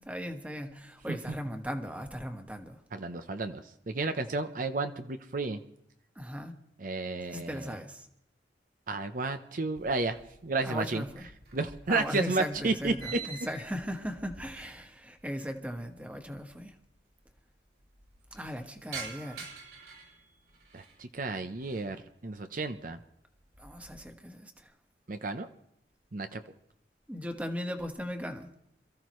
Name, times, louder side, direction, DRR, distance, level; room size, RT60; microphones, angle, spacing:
voice 1, 0.0-2.8 6.1-6.5 7.2-8.1 10.6-11.3 11.9-16.7 18.3-19.5 23.6-24.7 27.1-28.5, equal, 10° right, 1.4 m, -38 dB
voice 2, 2.9-5.6 6.8-7.8 8.9-11.0 11.5-13.2 20.7-22.0 22.2-23.0 25.1-25.5 26.1-26.4, right 3 dB, 50° right, 0.7 m, -32 dB
sound 1, 9.8-10.6 10.9-15.0 15.3-15.4 16.3-16.4 16.5-16.6 16.9-17.4 17.8-21.0 21.4-21.9 22.4-22.8 23.2-24.1, right 5 dB, 65° right, 6.4 m, -47 dB
27.5 x 14.5 x 3.1 m
head